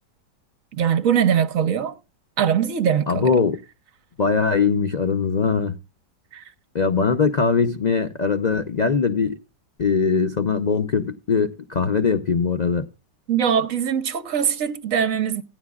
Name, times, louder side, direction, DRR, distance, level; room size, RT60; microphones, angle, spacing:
voice 1, 0.7-2.0 2.4-3.3 6.3-6.4 13.3-15.4, right 8 dB, 55° right, 1.2 m, -21 dB
voice 2, 3.1-3.6 4.2-5.8 6.7-9.3 9.8-12.8, left 5 dB, 85° left, 0.3 m, -21 dB
16.5 x 10.5 x 2.3 m
omnidirectional pair, 1.8 m